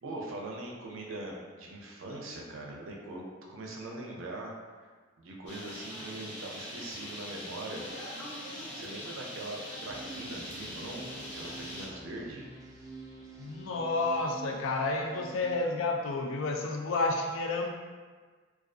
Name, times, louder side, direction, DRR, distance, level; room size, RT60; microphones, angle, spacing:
voice 1, 0.0-4.5 5.2-7.8 8.6-12.4, right 2 dB, 85° right, -1 dB, 0.5 m, -41 dB
Bird, 5.5-11.9, left 1 dB, 60° left, 0.8 m, -42 dB
sound 1, 9.9-15.6, right 3 dB, 20° right, 0.3 m, -47 dB
voice 2, 13.4-17.7, left 3 dB, 80° left, 2 dB, 0.3 m, -30 dB
2.3 x 2.3 x 2.4 m, 1.5 s
head